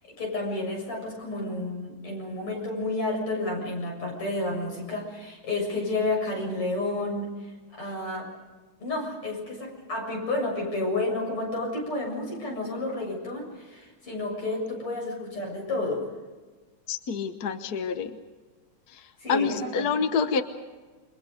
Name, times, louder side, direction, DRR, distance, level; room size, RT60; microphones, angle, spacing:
voice 1, 0.2-8.3 8.8-16.0 19.2-19.9, left 2 dB, 90° left, 0 dB, 8.3 m, -31 dB
voice 2, 16.9-18.2 18.9-20.4, left 5 dB, 50° left, 8 dB, 1.5 m, -27 dB
29.0 x 24.5 x 5.2 m, 1.3 s
omnidirectional pair, 2.4 m